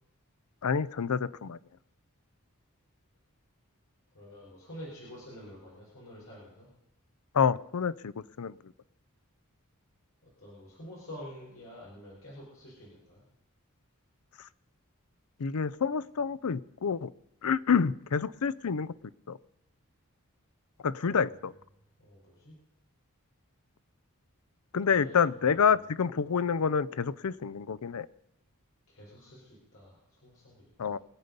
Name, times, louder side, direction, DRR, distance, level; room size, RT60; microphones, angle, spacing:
voice 1, 0.6-1.6 7.3-8.1 8.4-8.5 15.4-17.1 17.4-18.9 19.3-19.4 20.8-21.5 24.7-28.1 30.8-31.0, left 6 dB, 85° left, 18 dB, 0.5 m, -28 dB
voice 2, 4.1-6.7 10.4-13.2 21.0-21.3 22.0-22.5 24.9-25.5 28.9-31.0, equal, 70° left, -5 dB, 4.8 m, -48 dB
23.5 x 8.2 x 5.3 m, 0.81 s
head